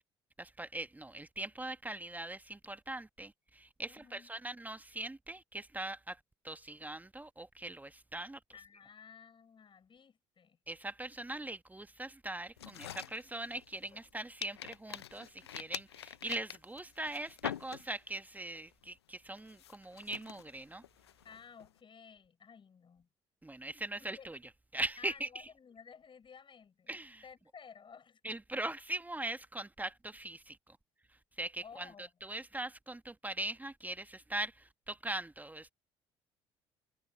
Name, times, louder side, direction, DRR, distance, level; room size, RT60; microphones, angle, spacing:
voice 1, 0.4-6.2 6.4-8.4 10.7-20.8 23.4-24.4 24.7-25.3 26.9-27.2 28.2-30.6 31.4-35.7, right 2 dB, 10° right, 1.1 m, -41 dB
voice 2, 3.9-4.3 8.5-10.6 13.9-14.0 21.2-23.1 23.6-23.7 24.0-24.3 25.0-26.9 27.2-28.2 31.6-32.1, left 6 dB, 40° left, 5.4 m, -55 dB
sound 1, 12.6-14.1 14.4-18.2 18.6-18.9 19.4-21.7, left 11 dB, 90° left, 0.5 m, -45 dB
hypercardioid pair, 55°, 13 cm